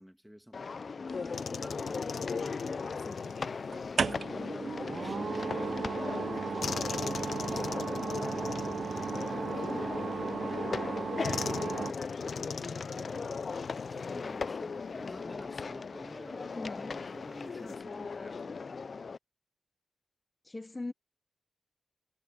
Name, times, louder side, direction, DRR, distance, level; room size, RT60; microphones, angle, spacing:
voice 1, 0.0-9.9 10.5-13.4 13.9-18.6, equal, ahead, 2.2 m, -50 dB
sound 1, 0.5-19.2, left 5 dB, 40° left, 0.3 m, -38 dB
sound 2, 1.3-4.0 6.6-10.1 11.2-14.6 14.9-15.1 17.4-17.8, left 6 dB, 60° left, 0.8 m, -41 dB
sound 3, 1.5-2.3 3.7-11.9, right 5 dB, 50° right, 0.4 m, -35 dB
voice 2, 16.5-16.9 20.5-20.9, left 2 dB, 20° left, 0.7 m, -40 dB
wide cardioid pair, 145°, 0 cm